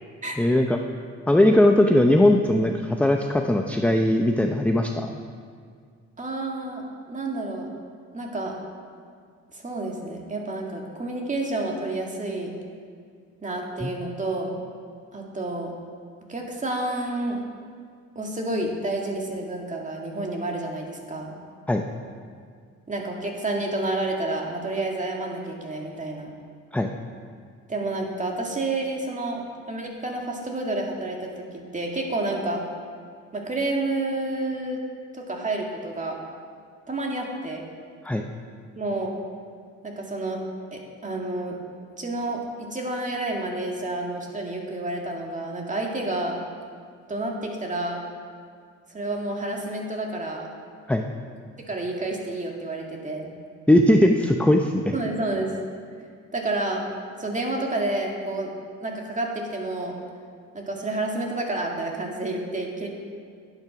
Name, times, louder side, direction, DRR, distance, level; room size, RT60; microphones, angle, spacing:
voice 1, 0.4-0.8 1.3-5.1 13.8-13.9 21.7-21.8 26.7-26.9 38.0-38.2 50.9-51.0 53.7-55.0, left 1 dB, 5° left, 3 dB, 0.6 m, -19 dB
voice 2, 6.2-7.7 8.1-8.6 9.5-12.5 13.4-14.6 15.1-15.7 16.3-17.4 18.2-21.3 22.9-26.3 27.7-31.4 31.7-32.6 33.3-34.8 35.1-36.2 36.9-37.6 38.8-39.1 39.8-40.4 40.7-41.6 42.0-46.3 47.1-48.0 48.9-50.5 51.7-53.3 54.9-55.5 56.3-56.8 57.2-58.5 58.8-59.9 60.5-62.9, right 2 dB, 25° right, 0 dB, 2.1 m, -29 dB
10.5 x 9.0 x 5.9 m, 2.1 s
cardioid pair, 90°, 30 cm